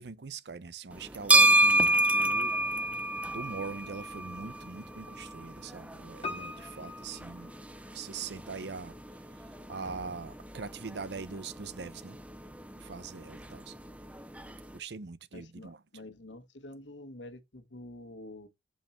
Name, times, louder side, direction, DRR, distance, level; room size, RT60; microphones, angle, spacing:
voice 1, 0.0-2.5 3.3-7.5 7.9-8.9 9.7-12.2 12.8-13.7 14.7-15.8, right 4 dB, 70° right, 0.6 m, -42 dB
sound 1, 0.9-14.8, right 1 dB, 5° right, 0.6 m, -30 dB
Piano, 6.2-8.3 8.5-8.6, left 3 dB, 30° left, 1.9 m, -42 dB
sound 2, 9.8-12.3, equal, 10° left, 2.3 m, -56 dB
voice 2, 15.3-18.5, left 1 dB, 85° left, 1.4 m, -47 dB
7.3 x 5.6 x 4.4 m
head